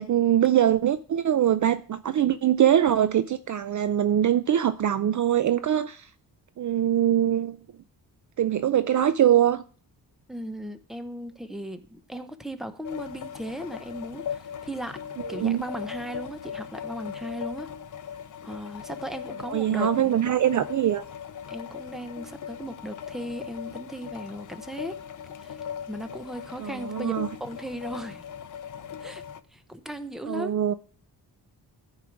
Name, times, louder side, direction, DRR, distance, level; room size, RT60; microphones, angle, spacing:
voice 1, 0.0-6.0 6.6-7.6 8.4-9.6 15.3-15.6 19.5-21.0 26.6-27.3 30.3-30.7, right 10 dB, 50° right, 0.5 m, -23 dB
voice 2, 10.3-15.0 15.3-17.7 18.4-20.1 21.5-25.0 25.4-25.6 25.9-27.1 27.4-28.2 29.0-29.2 29.5-30.6, equal, ahead, 0.8 m, -37 dB
sound 1, 12.8-29.4, left 8 dB, 50° left, 0.6 m, -39 dB
14.0 x 4.9 x 5.9 m
wide cardioid pair, 140°, 41 cm